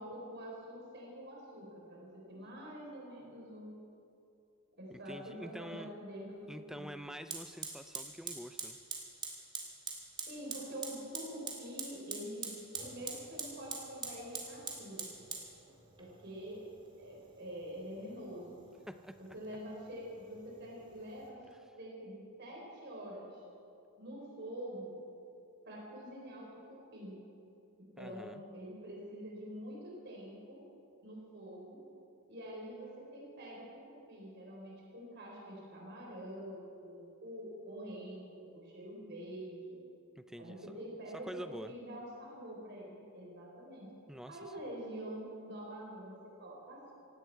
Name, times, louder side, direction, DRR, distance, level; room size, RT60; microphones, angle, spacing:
voice 1, 0.0-3.7 4.8-6.9 10.3-12.5 12.8-15.1 16.0-18.6 19.2-21.4 21.8-23.4 24.0-25.0 25.6-27.2 28.0-30.7 31.0-31.8 32.3-38.3 38.5-39.8 40.4-43.9 44.3-46.9, equal, 50° right, -3 dB, 4.3 m, -46 dB
voice 2, 4.9-5.9 6.5-8.8 18.9-19.2 28.0-28.4 40.2-40.7 41.1-41.7 44.1-44.5, equal, ahead, 10 dB, 0.4 m, -46 dB
Fire, 6.3-6.4 7.3-21.3, right 4 dB, 20° right, 2.2 m, -45 dB
18.0 x 16.5 x 4.7 m, 2.6 s
head